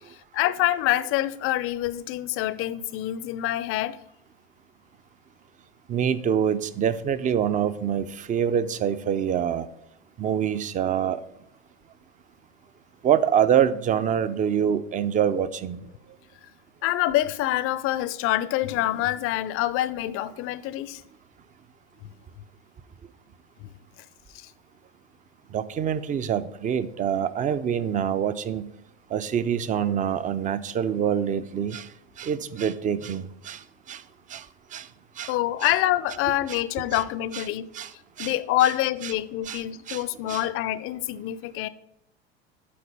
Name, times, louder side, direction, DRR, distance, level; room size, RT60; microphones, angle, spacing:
voice 1, 0.0-4.0 16.8-21.0 23.6-23.7 24.3-24.5 35.3-37.7 38.2-41.7, left 14 dB, 45° left, 0.5 m, -26 dB
voice 2, 5.9-9.7 10.2-11.2 13.0-15.8 25.5-28.6 29.1-31.9 32.2-33.6 33.9-34.0 34.3-34.4 34.7-34.9 35.2-35.3 35.6-35.7 36.9-37.0 37.3-37.4 37.7-37.9 38.2-38.3 39.5-39.6 39.9-40.0 40.3-40.4, right 8 dB, 25° right, 0.4 m, -25 dB
8.5 x 4.2 x 5.4 m
hypercardioid pair, 95°, 31 cm